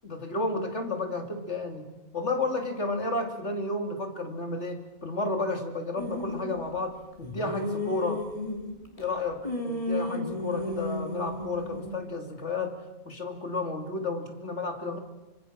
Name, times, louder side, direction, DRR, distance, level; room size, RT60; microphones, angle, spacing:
voice 1, 0.0-8.3 9.0-15.0, left 2 dB, 60° left, 5 dB, 3.0 m, -32 dB
sound 1, 6.0-6.6 7.2-9.0 9.4-12.0, left 1 dB, 25° left, 3.2 m, -33 dB
25.5 x 24.5 x 7.6 m, 1.1 s
omnidirectional pair, 1.3 m